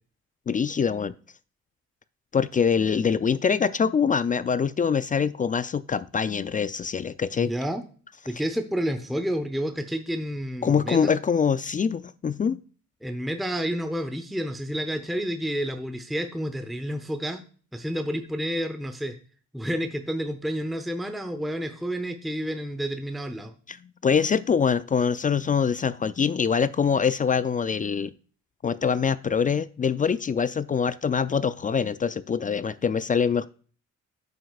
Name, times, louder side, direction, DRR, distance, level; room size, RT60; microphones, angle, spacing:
voice 1, 0.5-1.1 2.3-7.5 10.6-12.6 23.7-28.1 28.6-33.5, left 6 dB, 25° left, 16 dB, 0.4 m, -24 dB
voice 2, 7.4-7.8 8.3-11.2 13.0-17.4 17.7-19.2 19.5-23.5, equal, ahead, 7 dB, 0.8 m, -30 dB
10.0 x 7.8 x 2.4 m, 0.41 s
cardioid pair, 90°, 30 cm